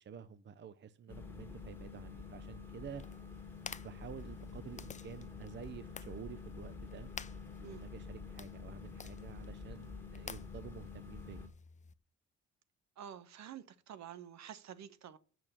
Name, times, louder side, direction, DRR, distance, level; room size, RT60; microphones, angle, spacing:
voice 1, 0.0-3.0 3.8-7.1 7.6-11.4, right 7 dB, 35° right, 0.6 m, -50 dB
sound 1, 1.1-11.5, left 4 dB, 5° left, 1.9 m, -48 dB
sound 2, 2.9-11.9, left 6 dB, 25° left, 0.5 m, -53 dB
voice 2, 13.0-15.2, right 9 dB, 65° right, 1.0 m, -49 dB
6.8 x 6.1 x 7.1 m
cardioid pair, 90°, 30 cm